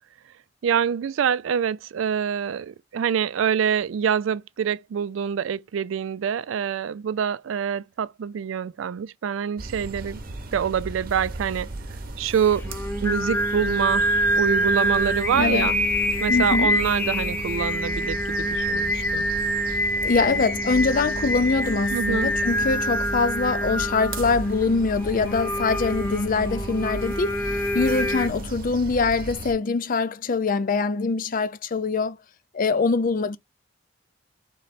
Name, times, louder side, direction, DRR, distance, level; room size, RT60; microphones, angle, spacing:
voice 1, 0.6-10.2 10.5-11.7 12.2-12.7 13.0-14.1 14.4-15.8 16.2-19.2 20.0-20.4 21.9-22.3, right 7 dB, 85° right, 0.3 m, -26 dB
sound 1, 9.6-29.5, right 2 dB, 50° right, 0.9 m, -35 dB
Singing, 12.3-28.3, equal, 10° left, 0.8 m, -26 dB
voice 2, 15.3-15.7 16.3-16.7 20.0-32.2 32.5-33.4, left 4 dB, 45° left, 0.5 m, -23 dB
3.8 x 3.2 x 4.2 m
head